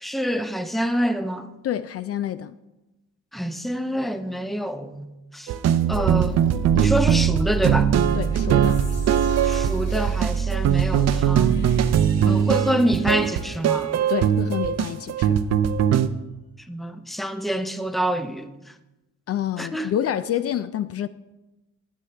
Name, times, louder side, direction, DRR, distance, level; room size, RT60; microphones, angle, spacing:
voice 1, 0.0-1.5 3.3-5.5 5.9-6.4 6.7-7.9 9.4-11.6 12.3-13.9 16.7-18.5 19.6-19.9, equal, ahead, 0.6 m, -26 dB
voice 2, 1.6-2.5 8.2-8.8 12.2-12.5 14.1-15.4 19.3-21.1, left 10 dB, 50° left, 0.4 m, -28 dB
sound 1, 5.5-16.1, right 9 dB, 60° right, 0.6 m, -21 dB
sound 2, 5.9-12.1, right 6 dB, 40° right, 1.0 m, -26 dB
sound 3, 8.6-15.4, left 2 dB, 85° left, 2.9 m, -47 dB
18.0 x 6.4 x 3.3 m
cardioid pair, 90°, 30 cm